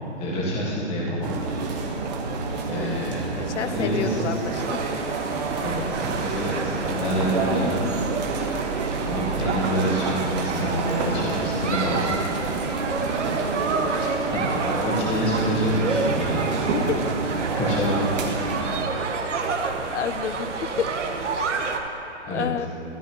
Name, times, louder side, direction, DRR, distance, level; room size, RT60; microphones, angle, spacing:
voice 1, 0.2-1.3 2.7-4.4 5.6-7.8 9.0-12.1 14.3-16.5 17.5-18.0 22.3-22.5, equal, 15° left, -5 dB, 1.6 m, -27 dB
sound 1, 1.2-18.8, right 4 dB, 35° right, 1.1 m, -29 dB
voice 2, 2.7-4.8 14.3-15.1 16.7-17.0 19.9-20.9 22.2-22.7, left 8 dB, 70° left, 11 dB, 0.7 m, -30 dB
sound 2, 4.5-21.8, right 4 dB, 75° right, 1.2 m, -29 dB
13.5 x 11.5 x 3.0 m, 2.7 s
hypercardioid pair, 150°, 37 cm